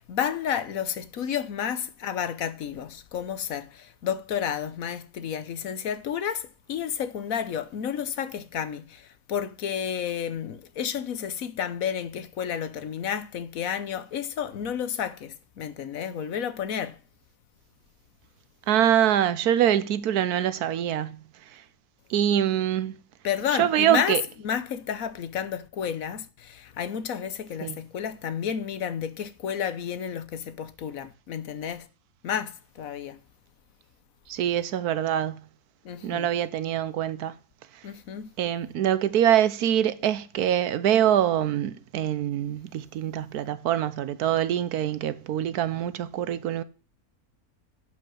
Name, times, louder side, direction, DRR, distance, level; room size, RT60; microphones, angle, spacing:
voice 1, 0.0-17.0 23.2-31.9 32.2-33.2 35.8-36.3 37.8-38.3, left 8 dB, 70° left, 1.3 m, -31 dB
voice 2, 18.7-21.2 21.5-21.6 22.1-23.0 23.6-24.2 27.6-27.8 34.3-35.4 36.0-37.3 38.4-46.6, right 10 dB, 90° right, 1.3 m, -24 dB
10.5 x 5.5 x 6.3 m
omnidirectional pair, 1.6 m